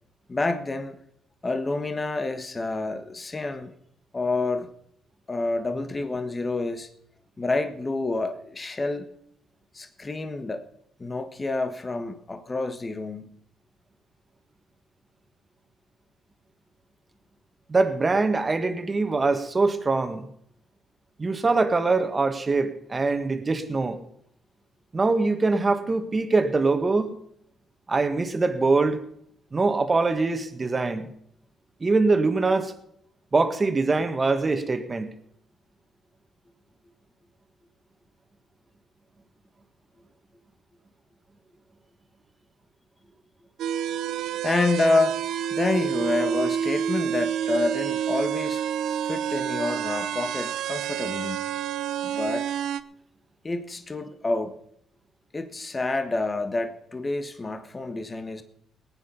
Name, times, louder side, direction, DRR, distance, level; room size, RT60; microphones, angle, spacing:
voice 1, 0.3-1.0 1.4-3.7 4.1-4.7 5.3-6.9 7.4-9.1 9.7-10.6 11.0-13.4 44.4-45.2 45.5-48.6 49.0-51.4 52.1-52.5 53.4-54.5 55.3-58.4, left 2 dB, 25° left, 7 dB, 1.5 m, -28 dB
voice 2, 17.7-20.3 21.2-24.0 24.9-27.1 27.9-29.0 29.5-31.1 31.8-32.7 33.3-35.1, right 3 dB, 30° right, 8 dB, 1.8 m, -23 dB
sound 1, 43.6-52.8, right 9 dB, 80° right, 0.6 m, -28 dB
19.5 x 9.0 x 5.6 m, 0.70 s
cardioid pair, 90°, 0 cm